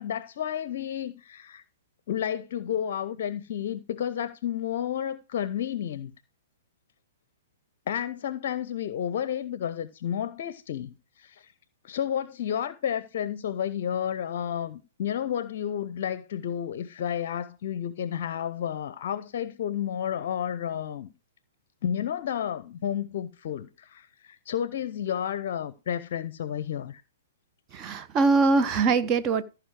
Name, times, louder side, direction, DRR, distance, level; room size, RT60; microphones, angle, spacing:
voice 1, 0.0-1.6 2.1-6.1 7.9-11.5 11.8-21.1 21.8-27.0, left 9 dB, 55° left, 0.6 m, -31 dB
voice 2, 27.7-29.4, right 4 dB, 30° right, 0.9 m, -22 dB
14.5 x 4.9 x 4.8 m
figure-of-eight pair, 115°, 0 cm